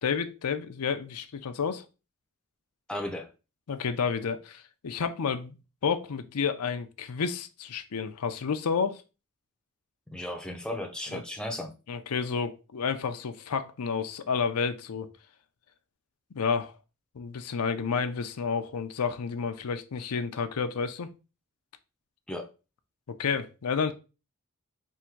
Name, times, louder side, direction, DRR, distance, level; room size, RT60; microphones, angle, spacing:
voice 1, 0.0-1.8 3.7-5.6 5.8-9.0 11.1-11.2 11.9-15.1 16.3-16.7 17.1-21.1 23.1-23.9, left 6 dB, 90° left, 0.5 m, -30 dB
voice 2, 2.9-3.3 10.1-11.7 22.3-22.5, left 1 dB, 5° left, 0.5 m, -35 dB
3.6 x 2.6 x 4.5 m
head